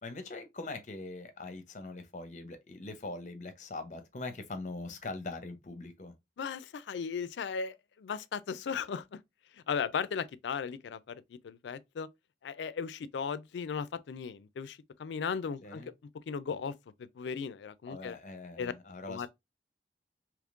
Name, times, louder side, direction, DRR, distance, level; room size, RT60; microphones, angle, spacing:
voice 1, 0.0-6.1 15.6-15.9 17.9-19.3, left 2 dB, 45° left, 0.7 m, -42 dB
voice 2, 6.4-9.0 9.7-11.1 11.4-12.1 12.4-15.8 16.3-16.7 17.2-18.2 18.6-18.7 19.1-19.3, left 6 dB, 85° left, 0.4 m, -36 dB
3.6 x 3.0 x 2.4 m
head